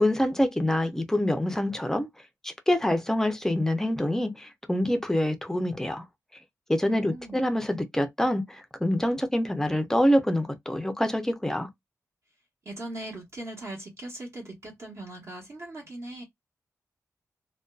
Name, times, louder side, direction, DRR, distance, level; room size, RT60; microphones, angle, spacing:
voice 1, 0.0-2.1 2.4-6.0 6.7-11.7, left 1 dB, 5° left, 0.5 m, -26 dB
voice 2, 6.8-7.4 12.6-16.2, right 1 dB, 50° right, 1.0 m, -39 dB
2.5 x 2.2 x 2.3 m
wide cardioid pair, 145°, 6 cm